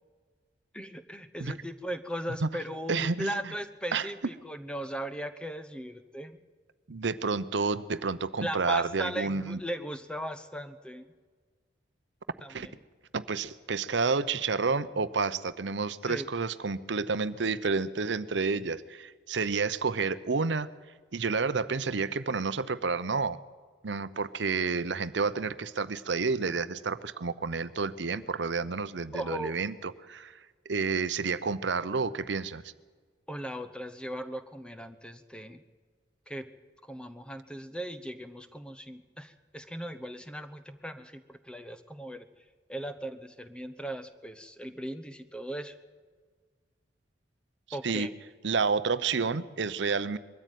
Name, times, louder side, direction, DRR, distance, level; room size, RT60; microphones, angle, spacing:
voice 1, 0.7-6.4 8.4-11.1 12.4-12.8 16.1-16.3 29.1-29.5 33.3-35.6 36.3-36.5 36.8-42.2 42.7-45.7 47.7-48.1, equal, 5° left, 10 dB, 0.9 m, -38 dB
voice 2, 2.9-3.5 3.9-4.1 6.9-9.6 12.5-12.7 13.1-20.7 21.1-23.4 23.8-30.4 30.6-32.7 47.8-48.1 48.4-50.2, right 4 dB, 75° right, 14 dB, 0.7 m, -30 dB
22.0 x 13.5 x 9.2 m, 1.5 s
head